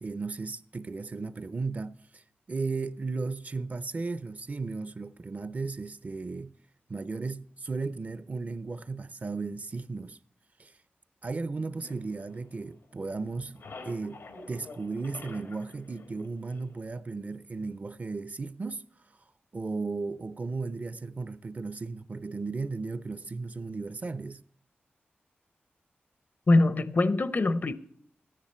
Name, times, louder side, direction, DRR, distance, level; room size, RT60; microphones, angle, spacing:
voice 1, 0.0-2.2 2.5-6.5 6.9-10.2 10.6-10.7 11.2-14.2 14.5-18.8 19.5-24.4, right 3 dB, 40° right, 0.5 m, -35 dB
sound 1, 11.8-13.0 13.3-17.0, left 3 dB, 90° left, 1.4 m, -48 dB
voice 2, 26.5-27.7, left 2 dB, 50° left, 0.6 m, -23 dB
14.0 x 10.0 x 4.3 m
wide cardioid pair, 90°, 4 cm